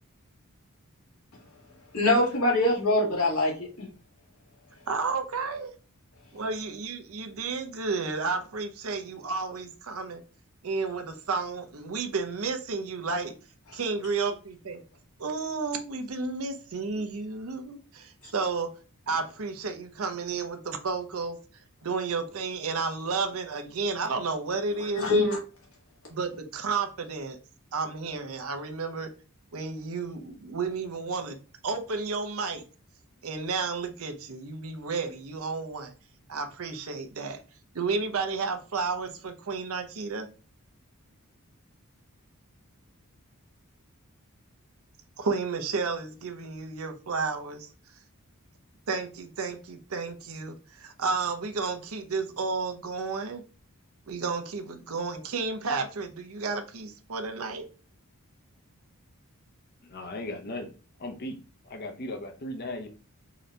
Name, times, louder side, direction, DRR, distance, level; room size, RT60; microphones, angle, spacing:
voice 1, 1.9-3.9 25.0-25.4, left 1 dB, 80° left, 1.8 m, -23 dB
voice 2, 4.9-5.7 6.3-10.2 10.6-13.3 13.7-14.8 15.2-18.7 19.1-21.4 21.8-25.1 26.1-27.4 27.7-29.1 29.5-31.4 31.6-32.6 33.2-35.9 36.3-37.4 37.7-40.3 45.2-47.7 48.9-53.4 54.1-57.6, right 4 dB, 70° right, 0.7 m, -32 dB
voice 3, 59.9-60.7 61.0-61.4 61.6-62.9, left 1 dB, 45° left, 0.7 m, -36 dB
3.9 x 2.7 x 3.2 m
head